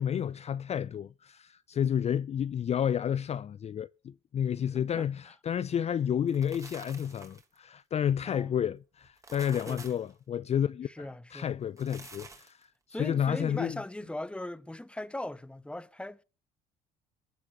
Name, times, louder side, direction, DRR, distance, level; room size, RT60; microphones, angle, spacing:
voice 1, 0.0-13.8, left 9 dB, 40° left, 0.5 m, -31 dB
sound 1, 6.1-7.6 9.0-10.1 11.6-12.6, right 3 dB, 20° right, 3.3 m, -49 dB
voice 2, 8.2-8.6 9.7-9.8 10.9-11.6 12.9-16.2, left 1 dB, 5° left, 1.2 m, -39 dB
22.5 x 9.7 x 3.1 m
hypercardioid pair, 65°, 17 cm